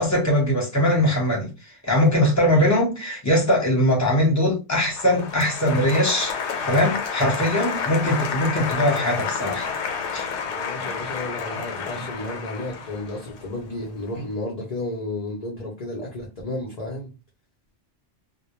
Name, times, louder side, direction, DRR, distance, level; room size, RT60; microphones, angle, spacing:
voice 1, 0.0-1.5 1.8-6.3 6.6-9.7 10.1-10.3, left 1 dB, 15° left, 0.8 m, -21 dB
Applause, 4.9-14.0, left 6 dB, 75° left, 0.9 m, -30 dB
voice 2, 10.5-17.1, left 2 dB, 50° left, 0.5 m, -32 dB
2.1 x 2.1 x 3.0 m
omnidirectional pair, 1.2 m